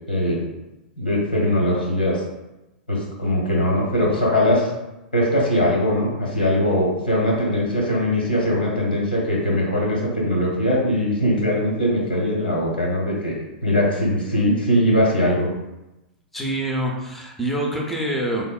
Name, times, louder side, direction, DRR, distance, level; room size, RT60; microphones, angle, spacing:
voice 1, 0.1-0.4 1.0-2.2 2.9-4.7 5.1-13.4 13.6-15.5, left 1 dB, 90° left, -3 dB, 0.9 m, -21 dB
voice 2, 16.3-18.4, right 1 dB, ahead, -1 dB, 0.5 m, -25 dB
3.4 x 2.0 x 2.3 m, 0.98 s
figure-of-eight pair, 100°, 5 cm